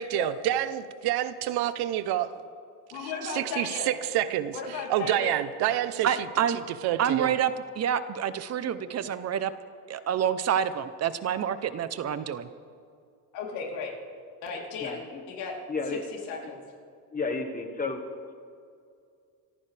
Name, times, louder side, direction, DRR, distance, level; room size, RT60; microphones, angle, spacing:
voice 1, 0.0-2.3 3.3-4.5 4.9-6.1 6.8-7.3, right 12 dB, 75° right, 13 dB, 0.9 m, -27 dB
voice 2, 2.9-4.0 4.5-5.4 13.3-13.9 14.4-15.5 16.3-16.6, left 5 dB, 90° left, -2 dB, 3.6 m, -35 dB
voice 3, 6.0-6.6 7.0-9.5 9.9-12.5, right 9 dB, 40° right, 12 dB, 0.8 m, -28 dB
voice 4, 14.8-15.2 15.7-16.0 16.4-16.5 17.1-18.0, left 3 dB, 20° left, 5 dB, 1.6 m, -32 dB
26.0 x 14.5 x 3.4 m, 2.3 s
cardioid pair, 125°, 38 cm